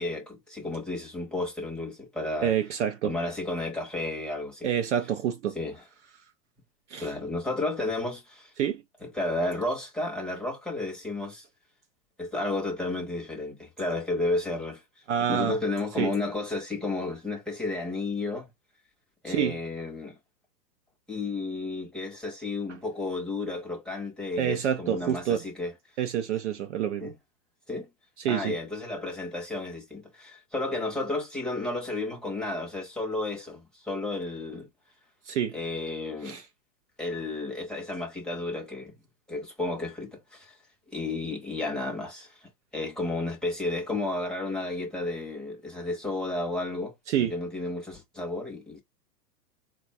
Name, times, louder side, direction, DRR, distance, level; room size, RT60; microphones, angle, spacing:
voice 1, 0.0-2.5 3.0-4.7 5.5-5.7 7.0-8.5 9.0-11.4 12.2-14.8 15.3-18.5 19.2-20.2 21.1-25.7 27.0-27.1 27.7-27.9 28.3-34.7 35.5-36.4 37.0-38.9 39.3-40.6 40.9-48.8, left 2 dB, ahead, 0.7 m, -32 dB
voice 2, 2.4-3.1 4.6-5.6 6.9-7.1 8.6-8.8 15.1-15.6 16.0-16.1 19.3-19.6 24.4-25.5 26.0-27.1 28.2-28.6 35.3-35.6 36.2-36.4 47.1-47.4, right 9 dB, 50° right, 0.5 m, -27 dB
3.8 x 2.3 x 2.6 m
hypercardioid pair, 140°, 48 cm